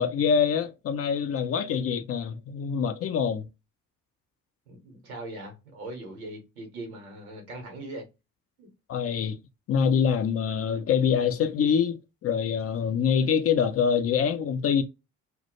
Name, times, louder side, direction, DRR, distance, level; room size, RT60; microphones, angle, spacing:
voice 1, 0.0-3.5 8.9-9.4 9.7-14.8, left 7 dB, 35° left, 0.4 m, -25 dB
voice 2, 4.7-8.0 8.6-8.7, right 1 dB, 85° right, 0.8 m, -40 dB
2.1 x 2.1 x 2.8 m
hypercardioid pair, 45°, 41 cm